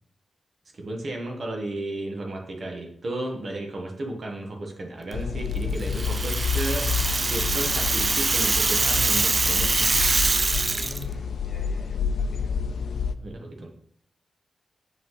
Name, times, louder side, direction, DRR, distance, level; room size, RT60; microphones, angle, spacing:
voice 1, 0.7-6.9 7.3-9.9 13.2-13.7, right 1 dB, 45° right, 1 dB, 1.3 m, -33 dB
sound 1, 5.1-13.2, left 6 dB, 90° left, 0.4 m, -29 dB
Rattle (instrument), 5.8-11.0, right 3 dB, 30° right, 0.3 m, -24 dB
voice 2, 10.7-12.8, left 1 dB, 30° left, 0 dB, 1.6 m, -46 dB
7.5 x 5.4 x 4.0 m, 0.67 s
wide cardioid pair, 175°, 0 cm